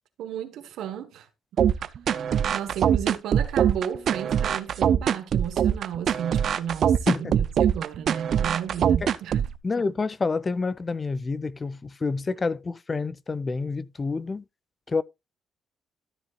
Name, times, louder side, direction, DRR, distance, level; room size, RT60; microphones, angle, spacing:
voice 1, 0.2-1.3 2.5-9.4, right 9 dB, 80° right, 1.4 m, -34 dB
sound 1, 1.6-9.6, right 8 dB, 60° right, 0.6 m, -23 dB
voice 2, 9.6-14.4 14.9-15.0, left 4 dB, 30° left, 0.5 m, -28 dB
13.0 x 7.4 x 2.4 m
cardioid pair, 90°, 0 cm